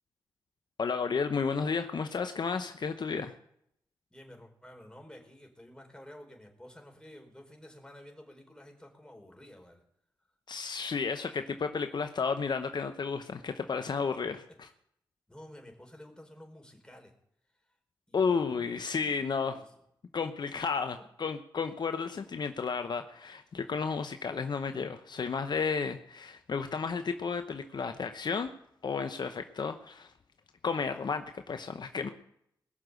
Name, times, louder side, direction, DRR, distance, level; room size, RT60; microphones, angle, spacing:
voice 1, 0.8-3.3 10.5-14.7 18.1-19.6 20.1-28.5 28.8-30.1 30.6-32.1, left 5 dB, 60° left, 8 dB, 0.9 m, -32 dB
voice 2, 4.1-9.8 14.5-14.6 15.3-17.1 17.5-17.8 18.1-18.7 19.5-19.6 20.9-21.0, left 1 dB, 10° left, 3 dB, 4.7 m, -52 dB
20.0 x 6.8 x 8.1 m, 0.73 s
supercardioid pair, 40°, 8 cm